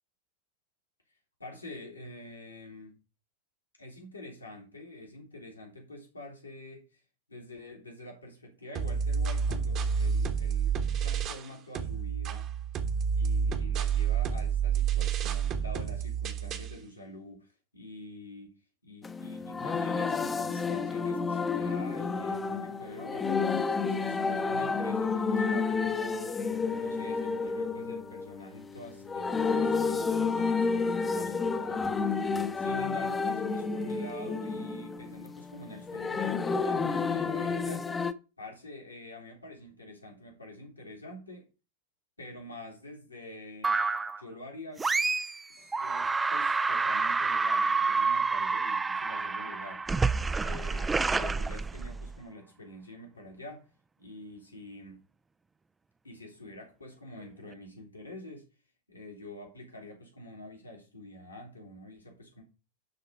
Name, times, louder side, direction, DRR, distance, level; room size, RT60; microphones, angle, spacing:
voice 1, 1.4-3.0 3.8-7.0 7.3-12.5 13.1-18.6 18.8-26.4 26.7-38.0 38.4-41.5 42.2-43.8 44.2-44.9 45.5-49.9 50.3-53.7 54.0-55.0 56.0-58.5 58.9-62.4, left 1 dB, 80° left, 2.7 m, -46 dB
sound 1, 8.8-11.5 11.8-16.8, right 7 dB, 35° right, 1.2 m, -29 dB
sound 2, 19.0-38.1, left 4 dB, 15° left, 0.8 m, -30 dB
sound 3, 43.6-44.2 44.8-45.4 45.7-52.2, right 4 dB, 10° right, 0.4 m, -28 dB
11.5 x 3.9 x 4.8 m
figure-of-eight pair, 90°, 0 cm